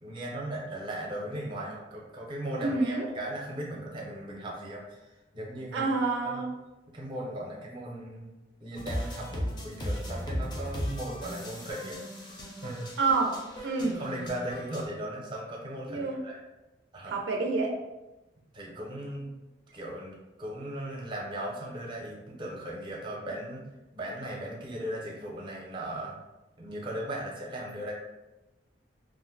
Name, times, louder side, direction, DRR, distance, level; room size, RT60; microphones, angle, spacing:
voice 1, 0.0-5.9 6.2-6.4 6.9-8.3 8.6-12.0 12.6-12.9 13.9-16.4 16.9-17.2 18.5-19.3 19.7-23.6 23.9-26.2 26.6-27.9, right 1 dB, 25° right, -3 dB, 0.6 m, -37 dB
voice 2, 2.6-3.1 5.7-6.5 13.0-14.0 15.9-16.2 17.1-17.7, right 3 dB, 75° right, 2 dB, 0.4 m, -28 dB
sound 1, 8.7-14.8, equal, 25° left, 0.5 m, -36 dB
2.5 x 2.0 x 3.7 m, 1.0 s
head